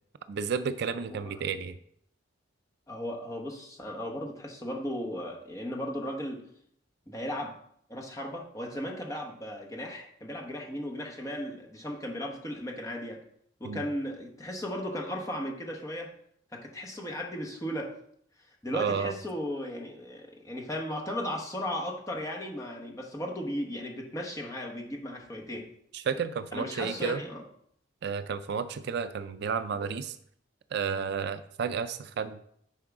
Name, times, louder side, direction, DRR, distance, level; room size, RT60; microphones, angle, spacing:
voice 1, 0.3-1.8 13.6-13.8 18.7-19.1 25.9-27.2 28.0-30.2 30.7-32.4, right 6 dB, 55° right, 11 dB, 0.3 m, -32 dB
voice 2, 2.9-6.4 7.1-7.6 7.9-13.2 13.6-16.1 16.5-17.9 18.6-25.7 26.5-27.4, equal, 15° left, 0 dB, 1.1 m, -36 dB
9.7 x 4.7 x 3.6 m, 0.67 s
head